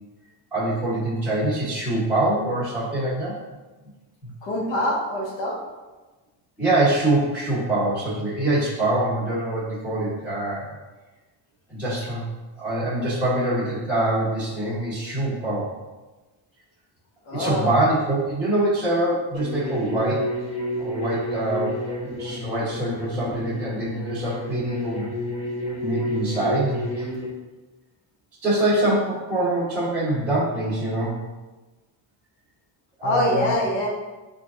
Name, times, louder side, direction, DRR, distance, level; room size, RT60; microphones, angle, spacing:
voice 1, 0.5-3.4 4.2-4.3 6.6-10.7 11.7-12.2 12.6-15.7 17.3-20.3 20.8-21.8 22.2-25.0 25.8-27.1 28.4-31.2 33.0-33.5, right 1 dB, 5° right, -12 dB, 1.3 m, -24 dB
voice 2, 4.4-5.6 17.3-17.7 33.0-33.9, left 1 dB, 75° left, -1 dB, 1.1 m, -24 dB
sound 1, 19.3-27.3, left 1 dB, 15° left, 0.7 m, -30 dB
6.1 x 2.6 x 2.4 m, 1.2 s
cardioid pair, 150°, 46 cm